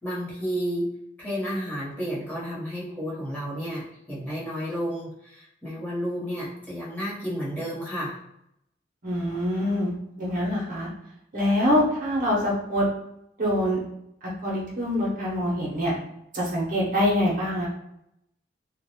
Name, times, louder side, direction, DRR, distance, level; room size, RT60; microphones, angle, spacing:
voice 1, 0.0-8.2, equal, 10° left, -8 dB, 0.9 m, -31 dB
voice 2, 9.0-10.9 11.3-12.8 13.4-13.8 14.4-15.9 16.3-17.7, left 1 dB, 50° right, -4 dB, 0.7 m, -25 dB
2.5 x 2.0 x 2.8 m, 0.79 s
head